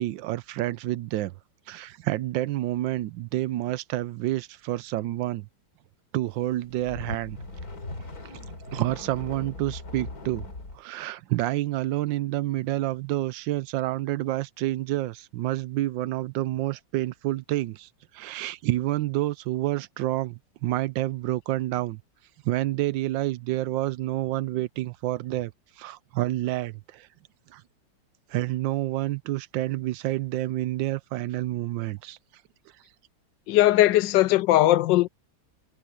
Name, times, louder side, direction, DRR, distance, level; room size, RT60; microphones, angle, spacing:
voice 1, 0.0-1.3 1.7-5.5 6.1-7.4 8.2-8.4 8.7-10.5 10.7-22.0 22.4-25.5 25.8-27.1 27.5-27.6 28.3-32.2, right 16 dB, 85° right, 1.3 m, -28 dB
sound 1, 6.5-10.8, left 2 dB, 50° left, 3.9 m, -39 dB
voice 2, 33.5-35.1, left 15 dB, 75° left, 1.2 m, -19 dB
omnidirectional pair, 2.0 m